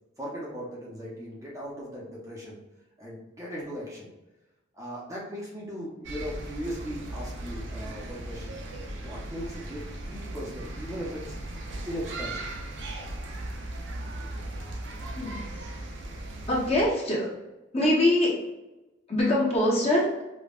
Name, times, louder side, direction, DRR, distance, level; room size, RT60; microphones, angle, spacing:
voice 1, 0.2-2.6 3.0-4.1 4.7-8.6 9.0-11.4 11.9-12.5, equal, 15° right, -5 dB, 0.7 m, -38 dB
sound 1, 6.0-16.9, right 1 dB, 65° right, 0.6 m, -37 dB
voice 2, 15.1-15.6 16.5-17.3 17.7-18.3 19.1-20.1, left 1 dB, 30° left, -5 dB, 0.9 m, -24 dB
5.2 x 2.3 x 2.4 m, 1.0 s
head